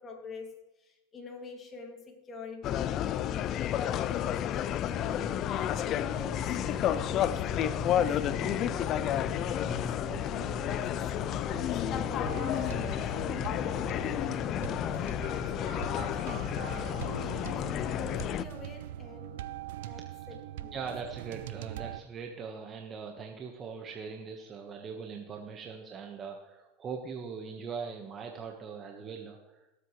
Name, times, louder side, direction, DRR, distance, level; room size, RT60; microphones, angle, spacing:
voice 1, 0.0-4.8 5.3-19.5 19.8-20.9, left 3 dB, 25° left, 1 dB, 2.5 m, -47 dB
sound 1, 2.6-18.5, left 11 dB, 45° left, 0.5 m, -31 dB
sound 2, 4.9-22.0, right 13 dB, 75° right, 0.5 m, -43 dB
voice 2, 20.7-29.7, right 5 dB, 30° right, 2 dB, 1.4 m, -41 dB
18.0 x 8.1 x 3.2 m, 1.0 s
supercardioid pair, 110°, 0 cm